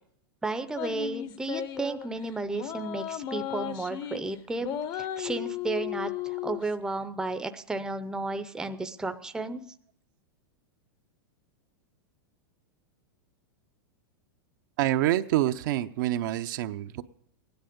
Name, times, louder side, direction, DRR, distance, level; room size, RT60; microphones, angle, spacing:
voice 1, 0.4-9.6, right 3 dB, 5° right, 9 dB, 0.6 m, -33 dB
sound 1, 0.8-2.1 2.5-4.2 4.6-6.6, left 11 dB, 35° left, 0.8 m, -35 dB
voice 2, 14.8-17.0, right 14 dB, 60° right, 9 dB, 0.7 m, -26 dB
15.5 x 10.5 x 5.2 m, 0.63 s
supercardioid pair, 135°, 12 cm